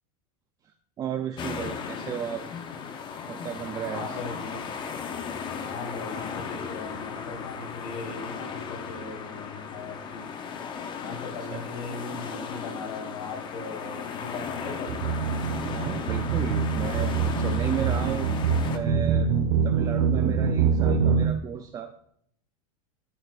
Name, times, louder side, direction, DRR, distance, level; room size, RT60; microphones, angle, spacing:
voice 1, 1.0-2.5 3.3-4.2 11.5-11.6 15.4-18.3 18.7-19.3 19.6-22.1, right 9 dB, 20° right, 6 dB, 0.5 m, -34 dB
sound 1, 1.4-18.8, left 6 dB, 25° left, 0.8 m, -36 dB
voice 2, 3.9-4.6 5.6-10.2 11.0-14.9, left 3 dB, 75° left, 1 dB, 3.9 m, -39 dB
sound 2, 14.9-21.3, right 6 dB, 80° right, 1.5 m, -25 dB
13.0 x 6.9 x 2.5 m, 0.69 s
supercardioid pair, 150°, 19 cm